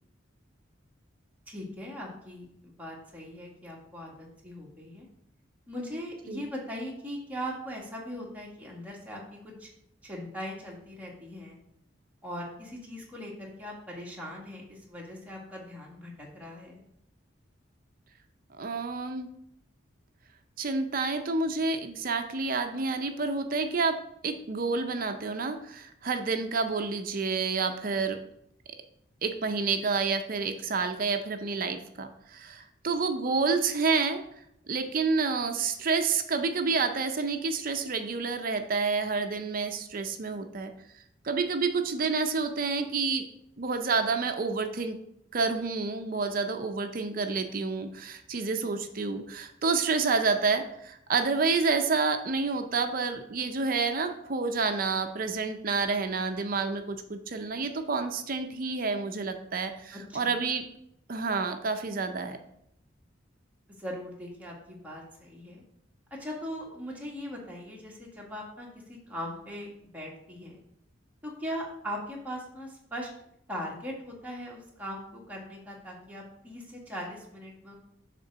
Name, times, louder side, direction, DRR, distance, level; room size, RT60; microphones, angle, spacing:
voice 1, 1.5-5.1 5.7-9.7 10.0-11.6 12.2-16.8 59.9-60.4 63.7-65.6 66.2-70.6 71.2-73.1 73.5-77.8, equal, 10° right, -3 dB, 1.7 m, -40 dB
voice 2, 18.6-19.3 20.6-28.2 29.2-34.2 34.7-40.7 41.2-43.2 43.6-45.0 45.3-60.6 61.1-62.4, right 4 dB, 45° right, 7 dB, 0.5 m, -29 dB
6.8 x 3.7 x 6.1 m, 0.76 s
head